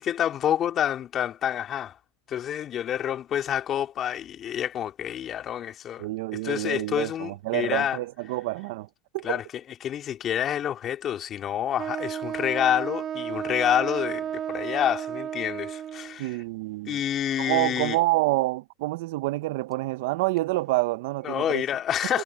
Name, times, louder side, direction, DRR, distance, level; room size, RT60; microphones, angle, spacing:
voice 1, 0.0-2.0 2.3-6.1 6.4-8.0 9.2-9.4 9.8-16.4 16.9-18.0 21.2-22.2, left 10 dB, 35° left, 2.6 m, -28 dB
voice 2, 6.0-8.9 9.1-9.4 16.2-17.0 17.4-21.6 22.1-22.2, right 20 dB, 70° right, 0.9 m, -27 dB
Wind instrument woodwind instrument, 11.8-16.2, right 9 dB, 35° right, 1.4 m, -33 dB
hypercardioid pair, 105°, 0 cm